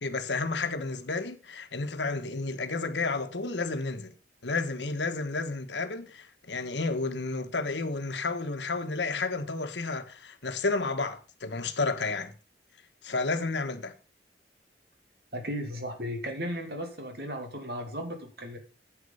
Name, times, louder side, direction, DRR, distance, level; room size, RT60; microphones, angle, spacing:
voice 1, 0.0-4.1 4.4-12.3 13.0-13.9, left 3 dB, 80° left, 1.3 m, -31 dB
voice 2, 15.3-18.6, equal, 60° right, 2.4 m, -35 dB
9.7 x 8.2 x 5.5 m
head